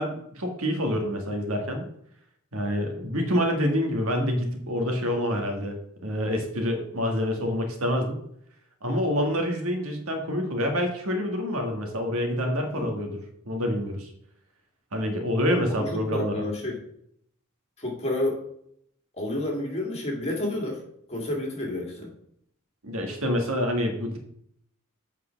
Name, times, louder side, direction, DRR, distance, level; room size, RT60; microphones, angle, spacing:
voice 1, 0.0-1.9 2.5-5.8 6.0-8.2 8.8-13.2 13.5-14.1 14.9-16.4 22.8-24.2, equal, 75° right, 3 dB, 1.7 m, -27 dB
voice 2, 16.1-16.8 17.8-18.4 19.1-20.8 21.1-22.1, left 1 dB, 30° left, -1 dB, 2.3 m, -30 dB
8.1 x 4.8 x 5.8 m, 0.71 s
head